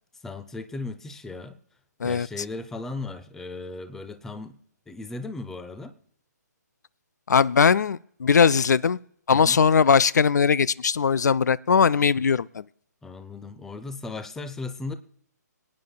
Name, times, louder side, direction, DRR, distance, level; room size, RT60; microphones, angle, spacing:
voice 1, 0.2-1.6 2.0-4.6 4.9-5.9 9.3-9.6 13.0-14.9, left 3 dB, 5° left, 11 dB, 0.5 m, -36 dB
voice 2, 7.3-9.0 9.3-12.6, left 6 dB, 70° left, 22 dB, 0.4 m, -20 dB
24.0 x 9.6 x 2.2 m, 0.64 s
figure-of-eight pair, 145°, 10 cm